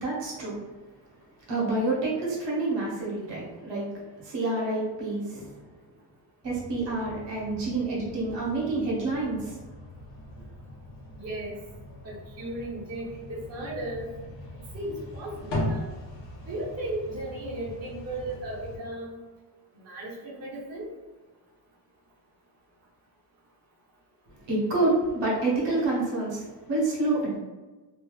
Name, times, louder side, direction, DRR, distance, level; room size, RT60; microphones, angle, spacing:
voice 1, 0.0-0.6 1.5-3.9 4.2-5.6 6.4-9.6 24.5-27.3, right 2 dB, 65° right, -5 dB, 1.0 m, -28 dB
sound 1, 6.4-18.8, left 1 dB, 60° left, 1.0 m, -39 dB
voice 2, 11.2-11.6 12.0-14.1 14.7-15.9 16.4-19.2 19.8-20.9, right 1 dB, 35° right, -8 dB, 1.0 m, -35 dB
3.0 x 2.7 x 2.3 m, 1.2 s
cardioid pair, 175°, 45 cm